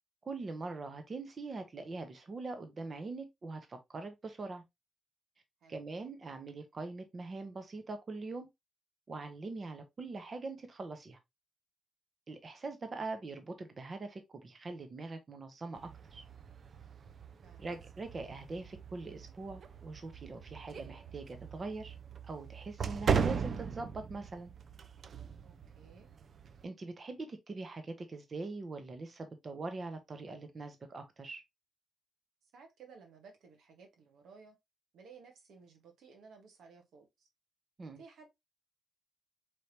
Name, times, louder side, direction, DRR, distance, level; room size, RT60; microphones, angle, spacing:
voice 1, 0.2-4.6 5.7-8.5 9.1-11.2 12.3-16.2 17.6-21.9 22.2-24.5 26.6-31.4 37.8-38.0, right 3 dB, 45° right, 0.9 m, -42 dB
sound 1, 15.7-26.6, right 6 dB, 65° right, 0.4 m, -39 dB
voice 2, 25.4-26.1 32.5-34.6 34.9-37.3 38.0-38.2, right 5 dB, 85° right, 1.2 m, -57 dB
4.6 x 3.4 x 2.8 m
cardioid pair, 70°, 0 cm